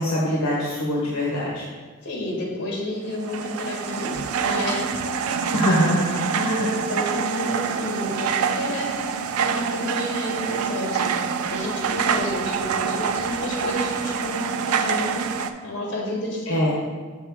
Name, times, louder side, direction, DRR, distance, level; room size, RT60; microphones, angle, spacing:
voice 1, 0.0-1.7 5.5-6.7 16.5-16.7, equal, 75° left, -4 dB, 1.0 m, -23 dB
voice 2, 2.0-5.4 6.5-16.6, left 1 dB, 55° left, -2 dB, 1.7 m, -30 dB
sound 1, 3.1-15.5, right 6 dB, 90° right, 0.4 m, -26 dB
6.3 x 4.7 x 3.5 m, 1.5 s
head